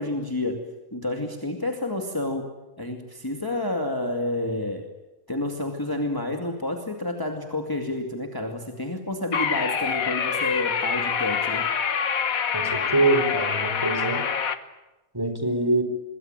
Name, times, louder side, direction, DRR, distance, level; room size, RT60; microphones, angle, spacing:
voice 1, 0.0-2.5 2.8-4.9 5.3-11.7, left 2 dB, 15° left, 3 dB, 2.3 m, -29 dB
sound 1, 9.3-14.6, left 7 dB, 85° left, 1.8 m, -26 dB
voice 2, 12.5-14.2 15.1-15.8, right 2 dB, 15° right, 6 dB, 4.5 m, -24 dB
26.0 x 22.0 x 9.0 m, 1.1 s
omnidirectional pair, 1.4 m